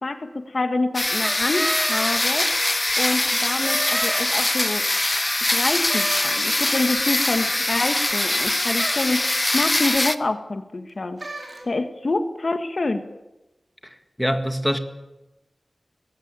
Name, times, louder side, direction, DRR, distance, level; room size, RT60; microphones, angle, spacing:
voice 1, 0.0-2.5 3.0-4.8 5.5-11.2 11.6-13.0, left 2 dB, 55° left, 8 dB, 1.6 m, -26 dB
sound 1, 0.9-10.2, left 1 dB, 30° left, 0.9 m, -23 dB
sound 2, 1.2-2.9 3.4-4.8 5.9-6.9 8.8-9.2 11.2-11.6, right 2 dB, 45° right, 4.2 m, -32 dB
voice 2, 14.2-14.8, equal, 5° left, 7 dB, 1.9 m, -23 dB
20.0 x 16.0 x 8.9 m, 1.0 s
wide cardioid pair, 75°, 0 cm